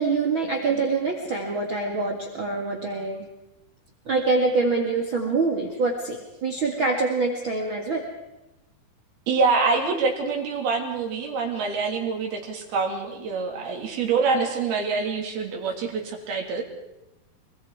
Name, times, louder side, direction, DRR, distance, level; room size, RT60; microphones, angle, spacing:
voice 1, 0.0-3.3 4.1-8.0, right 3 dB, 40° right, 1 dB, 2.2 m, -25 dB
voice 2, 9.3-16.6, right 4 dB, 80° right, 1 dB, 4.8 m, -25 dB
26.0 x 21.5 x 4.8 m, 0.95 s
omnidirectional pair, 4.3 m